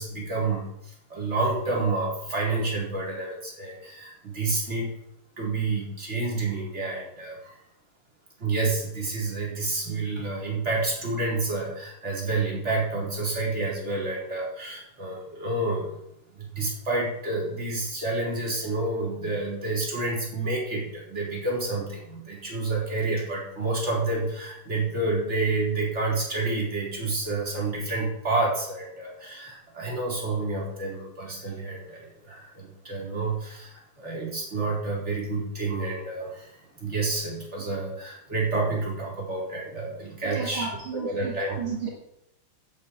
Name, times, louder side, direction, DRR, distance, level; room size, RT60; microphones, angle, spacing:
voice 1, 0.0-4.9 5.4-7.6 8.4-16.0 16.3-40.7 40.9-41.6, right 3 dB, 30° right, -3 dB, 4.5 m, -29 dB
voice 2, 40.3-41.9, right 5 dB, 65° right, -1 dB, 2.6 m, -33 dB
11.0 x 6.9 x 8.6 m, 0.80 s
omnidirectional pair, 2.3 m